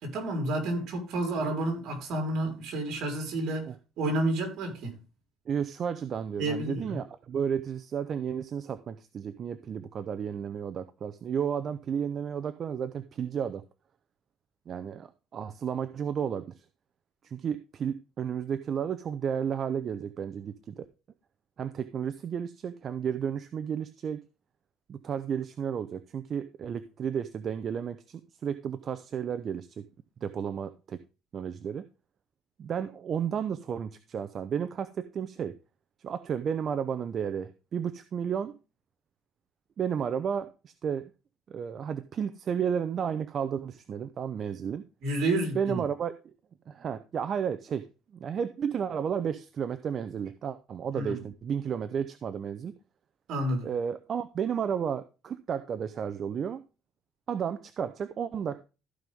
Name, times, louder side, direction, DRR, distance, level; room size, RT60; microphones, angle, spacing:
voice 1, 0.0-3.7 4.0-5.0 6.4-7.0 45.0-45.9 50.9-51.3 53.3-53.7, right 1 dB, 65° right, 4.1 m, -30 dB
voice 2, 5.5-13.6 14.7-16.5 17.2-20.9 21.6-24.2 24.9-29.8 30.2-31.0 31.3-31.9 32.6-35.6 36.0-38.5 39.8-41.0 41.5-44.8 45.5-46.1 46.7-47.9 48.1-52.7 53.6-56.6 57.3-58.6, right 7 dB, 45° right, 0.7 m, -32 dB
14.5 x 5.4 x 3.5 m
cardioid pair, 120°, 0 cm